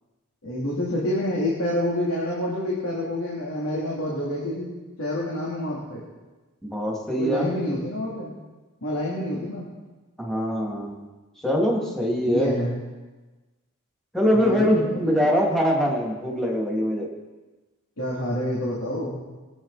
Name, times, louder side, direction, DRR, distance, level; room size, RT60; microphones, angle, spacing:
voice 1, 0.4-4.7 5.0-6.0 7.2-8.3 8.8-9.7 12.3-12.7 14.3-15.3 18.0-19.2, left 1 dB, 70° left, -6 dB, 3.2 m, -28 dB
voice 2, 6.6-7.5 10.2-11.1 11.4-12.6 14.1-17.1, equal, ahead, -3 dB, 2.7 m, -23 dB
22.0 x 9.3 x 4.3 m, 1.2 s
head